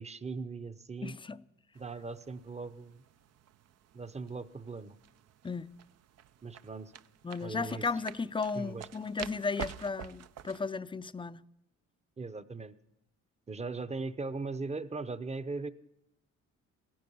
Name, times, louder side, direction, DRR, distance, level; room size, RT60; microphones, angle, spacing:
voice 1, 0.0-1.2 1.7-3.0 3.9-5.0 6.4-6.9 7.4-7.9 8.5-8.9 12.2-12.7 13.5-15.7, right 3 dB, 20° right, 0.8 m, -39 dB
voice 2, 1.0-1.4 5.4-5.7 7.2-11.4, left 4 dB, 15° left, 0.5 m, -35 dB
sound 1, 1.7-10.7, right 10 dB, 55° right, 0.6 m, -48 dB
17.0 x 15.0 x 5.5 m
cardioid pair, 90°, 30 cm